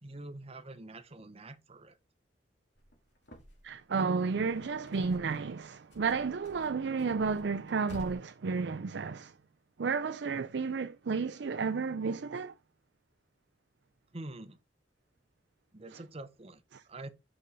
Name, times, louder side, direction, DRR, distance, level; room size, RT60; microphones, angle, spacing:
voice 1, 0.0-2.0 14.1-14.6 15.7-17.1, right 2 dB, 35° right, 0.9 m, -46 dB
sound 1, 2.8-3.8 4.1-5.6 5.9-8.1, left 1 dB, 65° left, 2.3 m, -52 dB
voice 2, 3.6-9.3 9.8-12.5 15.9-16.0 16.7-16.8, right 5 dB, 65° right, 0.5 m, -32 dB
5.5 x 5.4 x 5.0 m
head